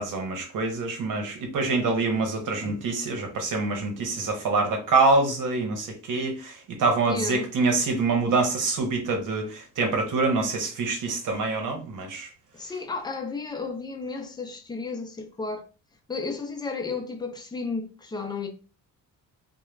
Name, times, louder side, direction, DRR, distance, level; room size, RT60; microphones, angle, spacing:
voice 1, 0.0-12.3, right 3 dB, 70° right, 0.9 m, -25 dB
voice 2, 7.1-7.5 12.5-15.7 16.1-18.5, left 4 dB, 15° left, 0.4 m, -33 dB
2.3 x 2.1 x 3.1 m
cardioid pair, 145°, 33 cm